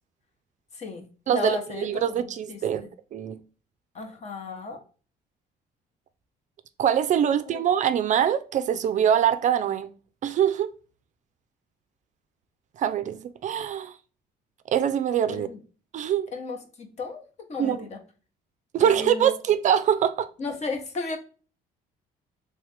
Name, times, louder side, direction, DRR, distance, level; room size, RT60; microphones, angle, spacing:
voice 1, 0.7-2.9 3.9-4.8 7.3-7.6 15.3-15.6 16.3-18.0 18.8-19.3 20.4-21.2, left 3 dB, 40° left, 1.0 m, -35 dB
voice 2, 1.3-2.8 3.1-3.4 6.8-9.9 10.2-10.7 12.8-13.9 14.7-15.5 15.9-16.3 17.6-17.8 18.7-20.3, right 9 dB, 45° right, 0.4 m, -23 dB
3.2 x 3.1 x 3.2 m
cardioid pair, 110°, 17 cm